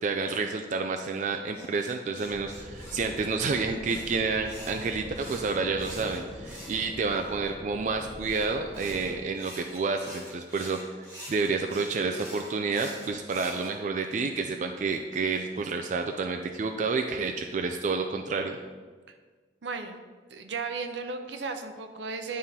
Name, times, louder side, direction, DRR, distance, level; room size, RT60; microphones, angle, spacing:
voice 1, 0.0-10.8 11.3-18.6, right 4 dB, 40° right, 4 dB, 0.3 m, -29 dB
sound 1, 1.5-7.4 8.2-13.7, equal, 15° right, 1.6 m, -46 dB
sound 2, 2.2-9.2, equal, 5° left, 1.0 m, -43 dB
voice 2, 19.6-20.0 20.3-22.4, right 4 dB, 75° right, 7 dB, 0.6 m, -35 dB
10.5 x 3.7 x 4.2 m, 1.4 s
head